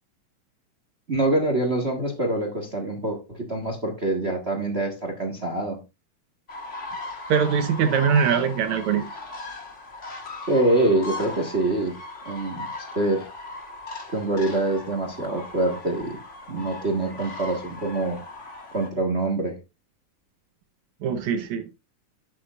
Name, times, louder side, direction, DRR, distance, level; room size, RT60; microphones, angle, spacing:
voice 1, 1.1-5.8 10.5-12.0 12.2-12.7 12.9-13.3 14.1-16.2 16.5-18.2 18.7-19.6, right 2 dB, 35° right, 4 dB, 1.0 m, -25 dB
sound 1, 6.5-18.9, left 2 dB, 40° left, 1.1 m, -38 dB
voice 2, 7.3-9.1 21.0-21.7, right 7 dB, 70° right, 8 dB, 2.1 m, -22 dB
11.5 x 8.7 x 2.5 m, 0.26 s
omnidirectional pair, 3.7 m